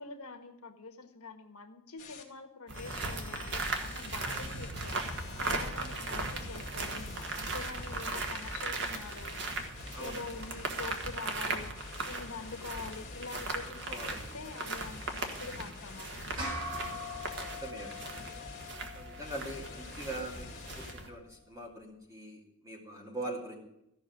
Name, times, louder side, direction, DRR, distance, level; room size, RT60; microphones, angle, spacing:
voice 1, 0.0-5.0 5.3-9.4 10.0-11.7 12.0-16.7, left 4 dB, 85° left, 6 dB, 1.4 m, -45 dB
sound 1, 2.0-2.2 2.7-18.7 19.2-20.9, left 4 dB, 35° left, 2.2 m, -48 dB
sound 2, 2.7-21.1, right 3 dB, 55° right, 1.6 m, -38 dB
voice 2, 4.3-4.8 9.9-10.2 13.6-14.3 17.4-18.3 18.9-23.6, right 1 dB, 15° right, 0 dB, 2.6 m, -43 dB
sound 3, 16.4-21.1, left 1 dB, 80° right, 5.0 m, -43 dB
14.0 x 6.1 x 9.4 m, 0.82 s
head